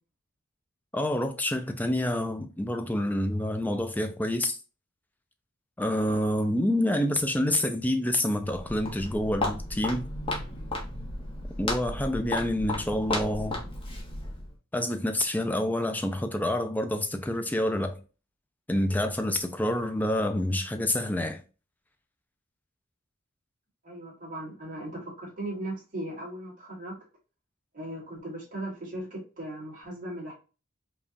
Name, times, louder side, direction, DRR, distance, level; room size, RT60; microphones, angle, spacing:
voice 1, 0.9-4.6 5.8-10.1 11.6-13.6 14.7-18.0 18.7-21.4, left 1 dB, 10° left, 0.4 m, -27 dB
Walk footsteps, 8.4-14.5, left 2 dB, 25° left, 0.9 m, -34 dB
voice 2, 23.8-27.0 27.7-30.3, right 1 dB, 40° right, 2.1 m, -38 dB
4.9 x 2.3 x 2.6 m
head